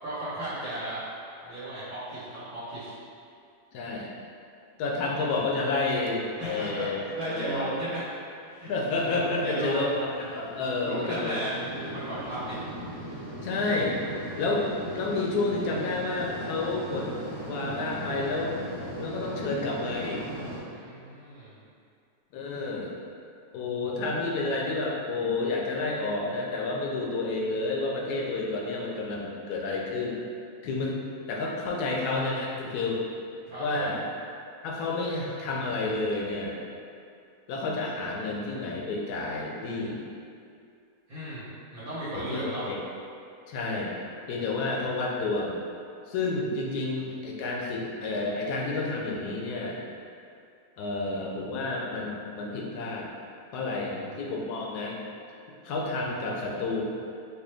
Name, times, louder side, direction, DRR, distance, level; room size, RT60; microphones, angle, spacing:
voice 1, 0.0-1.0 1.4-2.9 6.4-6.9 7.2-8.1 8.5-8.7 9.2-9.9 10.8-12.5 20.7-21.6 33.5-34.0 41.1-41.4 41.7-42.7 53.8-54.0, right 1 dB, 65° right, -14 dB, 1.6 m, -35 dB
voice 2, 3.7-4.1 4.8-7.0 7.3-7.7 8.7-11.4 13.4-14.0 14.4-17.1 17.5-18.5 19.0-20.2 22.3-22.9 23.5-30.2 30.6-31.0 31.3-33.0 33.6-34.0 34.6-36.6 37.5-40.0 42.1-42.8 43.5-43.9 44.3-45.6 46.1-49.8 50.8-53.1 53.5-55.0 55.6-56.8, left 3 dB, 75° left, -2 dB, 1.1 m, -30 dB
sound 1, 8.9-20.6, equal, 35° right, 0.3 m, -39 dB
4.5 x 2.2 x 3.3 m, 2.4 s
omnidirectional pair, 1.7 m